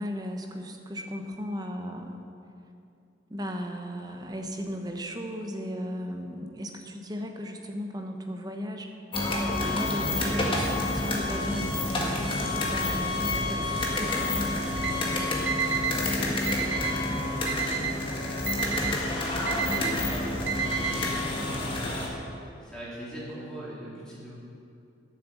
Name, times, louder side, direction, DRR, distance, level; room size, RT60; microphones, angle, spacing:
voice 1, 0.0-2.2 3.3-8.9 9.6-14.8 18.8-19.1, equal, 20° right, 4 dB, 1.0 m, -36 dB
sound 1, 9.1-22.1, left 2 dB, 30° left, 1.7 m, -29 dB
Alarm, 14.8-14.9 15.5-15.9 16.5-16.9 17.5-17.9 18.5-18.9 19.5-19.9 20.5-20.9, right 7 dB, 90° right, 1.0 m, -30 dB
voice 2, 15.9-17.9 18.4-18.7 19.3-22.0 22.6-24.4, equal, 5° left, -8 dB, 3.6 m, -41 dB
11.0 x 7.6 x 8.4 m, 2.5 s
head